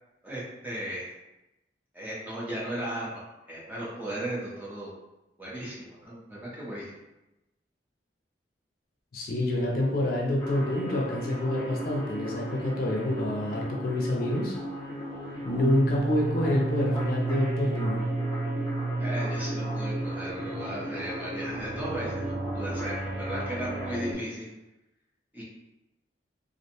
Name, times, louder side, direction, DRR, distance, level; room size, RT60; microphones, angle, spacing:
voice 1, 0.2-1.1 1.9-3.2 3.5-4.9 5.4-7.0 19.0-24.5 25.3-25.4, right 1 dB, 10° right, -7 dB, 0.5 m, -36 dB
voice 2, 9.1-14.6 15.5-18.0, left 1 dB, 50° left, -2 dB, 0.4 m, -27 dB
sound 1, 10.4-24.2, equal, 25° left, 0.7 m, -37 dB
sound 2, 15.4-24.1, right 3 dB, 65° right, 0.5 m, -33 dB
2.5 x 2.1 x 2.7 m, 0.97 s
head